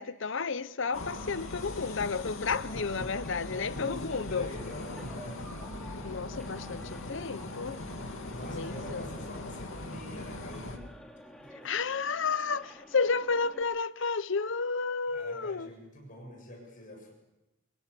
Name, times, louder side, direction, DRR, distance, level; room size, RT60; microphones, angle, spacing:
voice 1, 0.0-4.5 6.0-7.8 8.5-9.1 11.6-15.7, left 5 dB, 60° left, 0.8 m, -32 dB
sound 1, 0.8-13.6, equal, ahead, 2.4 m, -51 dB
sound 2, 0.9-10.8, left 2 dB, 80° left, 2.5 m, -40 dB
voice 2, 3.5-5.4 8.0-10.9 11.4-11.7 15.1-17.1, left 1 dB, 40° left, 7.4 m, -46 dB
24.5 x 22.5 x 6.9 m
head